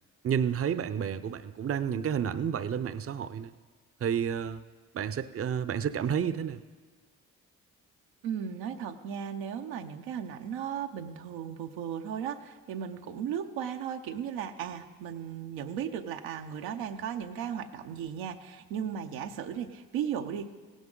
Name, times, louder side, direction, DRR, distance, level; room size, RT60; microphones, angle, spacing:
voice 1, 0.2-3.5 4.0-4.6 4.9-6.6, right 8 dB, 40° right, 14 dB, 0.6 m, -30 dB
voice 2, 8.2-20.5, right 8 dB, 85° right, 5 dB, 0.7 m, -36 dB
17.0 x 10.0 x 3.8 m, 1.5 s
supercardioid pair, 50°, 36 cm